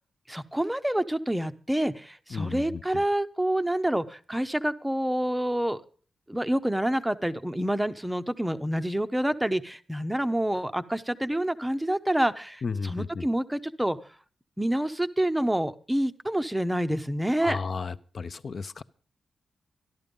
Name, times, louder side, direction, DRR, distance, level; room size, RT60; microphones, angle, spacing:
voice 1, 0.3-5.8 6.3-14.0 14.6-17.6, right 1 dB, 5° right, 10 dB, 0.7 m, -27 dB
voice 2, 2.3-2.8 12.6-13.2 17.4-18.8, left 5 dB, 40° left, 14 dB, 0.6 m, -33 dB
13.5 x 12.0 x 5.3 m, 0.40 s
wide cardioid pair, 180°, 0 cm